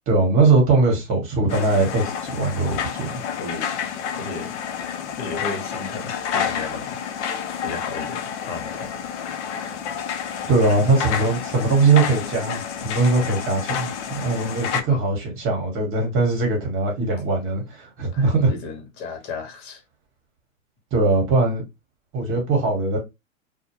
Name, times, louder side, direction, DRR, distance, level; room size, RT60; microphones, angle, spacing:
voice 1, 0.1-3.1 10.5-18.5 20.9-21.6 22.1-23.0, right 3 dB, 30° right, 1.2 m, -20 dB
sound 1, 1.5-14.8, left 8 dB, 60° left, 0.5 m, -29 dB
voice 2, 3.4-3.8 4.1-4.6 5.1-7.3 7.6-8.9 14.9-15.0 18.1-19.8, left 4 dB, 40° left, 1.0 m, -34 dB
2.2 x 2.1 x 2.9 m
hypercardioid pair, 115°, 40 cm